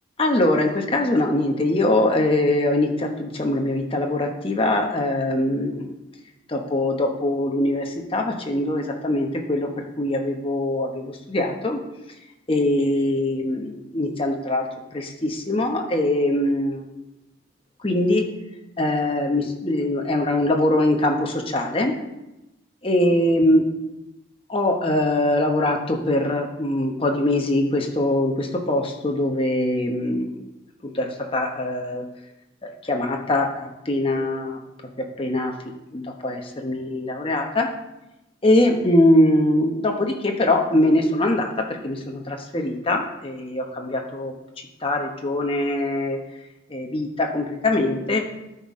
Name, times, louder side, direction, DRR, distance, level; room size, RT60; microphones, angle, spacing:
voice 1, 0.2-5.9 6.5-11.8 12.5-14.7 14.9-16.9 17.8-18.2 18.8-21.9 22.8-23.7 24.5-30.4 30.8-32.0 32.6-34.6 35.2-35.5 35.9-37.7 38.4-41.5 41.8-44.3 44.8-46.2 46.7-48.4, left 1 dB, 30° left, 2 dB, 0.9 m, -22 dB
12.0 x 4.2 x 4.9 m, 0.95 s
head